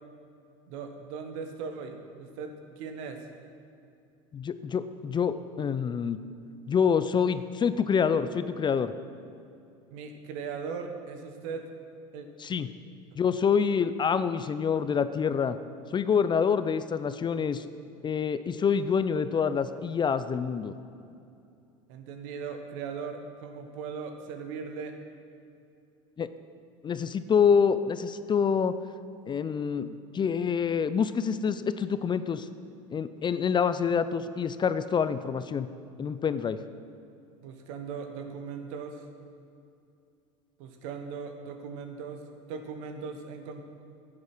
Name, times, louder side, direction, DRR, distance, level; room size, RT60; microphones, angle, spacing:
voice 1, 0.7-3.2 9.9-11.6 12.1-12.3 21.9-24.9 37.4-39.0 40.6-42.2 42.5-43.6, right 5 dB, 70° right, 5 dB, 1.4 m, -38 dB
voice 2, 4.3-6.2 6.7-8.9 12.4-12.7 13.1-15.6 15.9-17.6 18.0-20.7 26.2-26.3 26.8-28.7 29.3-32.5 32.9-35.7 36.0-36.6, left 6 dB, 25° left, 13 dB, 0.5 m, -26 dB
11.0 x 8.4 x 6.1 m, 2.5 s
hypercardioid pair, 85°, 17 cm